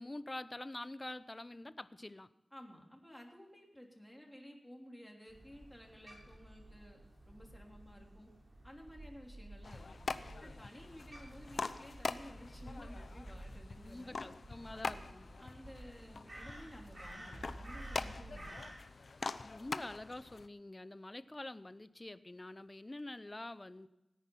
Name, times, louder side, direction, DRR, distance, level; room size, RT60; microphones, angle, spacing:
voice 1, 0.0-2.3 13.8-15.3 19.4-23.9, left 2 dB, 30° left, 14 dB, 0.7 m, -46 dB
voice 2, 2.5-7.0 7.2-8.3 8.6-9.8 10.4-14.3 14.7-14.9 15.4-18.6, equal, 10° left, 0 dB, 3.5 m, -54 dB
Crow, 5.3-18.7, right 1 dB, 40° right, 5.6 m, -52 dB
sound 1, 9.6-20.5, left 4 dB, 70° left, 0.7 m, -44 dB
17.5 x 10.5 x 5.6 m, 0.96 s
wide cardioid pair, 70°, 0 cm